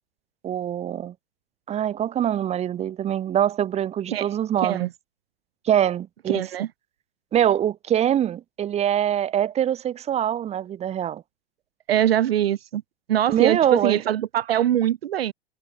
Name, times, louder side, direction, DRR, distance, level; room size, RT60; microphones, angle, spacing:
voice 1, 0.4-1.1 1.7-4.9 5.6-6.4 7.3-11.2 13.3-14.0, right 10 dB, 20° right, 0.8 m, -23 dB
voice 2, 6.3-6.7 11.9-12.8 13.1-15.3, right 11 dB, 80° right, 0.5 m, -23 dB
figure-of-eight pair, 100°, 30 cm